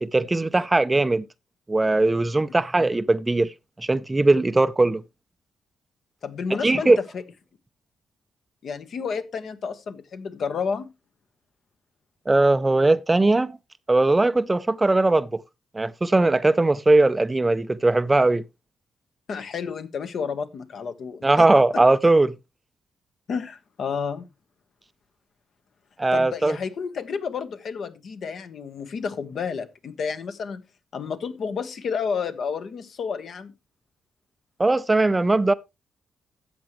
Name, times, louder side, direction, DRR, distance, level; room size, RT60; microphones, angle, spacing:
voice 1, 0.0-1.2 1.7-3.5 3.8-5.0 6.6-7.0 12.3-13.6 13.9-15.4 15.7-18.4 21.2-22.3 26.0-26.6 34.6-35.5, right 2 dB, 15° right, 0.5 m, -19 dB
voice 2, 6.2-7.2 8.6-10.9 19.3-21.5 21.7-21.8 23.3-24.3 26.1-30.6 30.9-33.5, left 6 dB, 60° left, 1.1 m, -31 dB
13.0 x 8.0 x 3.1 m
cardioid pair, 105°, 0 cm